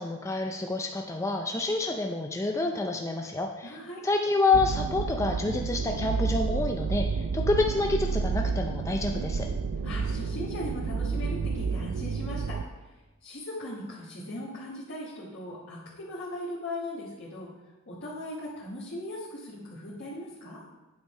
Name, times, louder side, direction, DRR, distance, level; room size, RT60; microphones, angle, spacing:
voice 1, 0.0-3.8 4.0-9.5, left 3 dB, 15° left, 2 dB, 0.4 m, -28 dB
voice 2, 3.6-4.0 9.8-12.9 13.2-17.5 17.9-20.6, left 1 dB, 60° left, -8 dB, 1.6 m, -39 dB
sound 1, 4.5-12.6, right 5 dB, 65° right, 0.4 m, -30 dB
8.8 x 5.5 x 4.3 m, 1.1 s
head